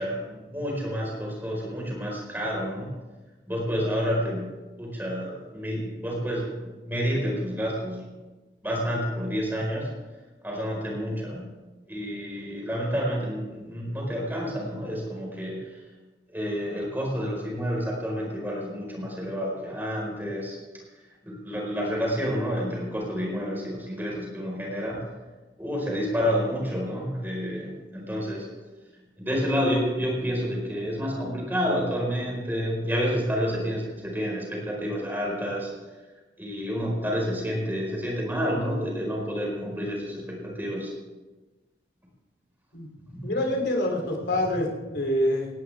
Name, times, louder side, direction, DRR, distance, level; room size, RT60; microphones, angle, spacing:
voice 1, 0.0-2.9 3.5-4.5 4.8-6.5 6.8-8.1 8.6-9.9 10.4-11.4 11.9-15.8 16.3-20.6 21.2-25.0 25.6-28.5 29.2-35.7 36.4-40.9 43.1-43.3, equal, 10° right, -2 dB, 4.9 m, -29 dB
voice 2, 42.7-44.7 44.9-45.5, left 1 dB, 80° left, 1 dB, 3.4 m, -26 dB
19.0 x 18.0 x 3.6 m, 1.2 s
head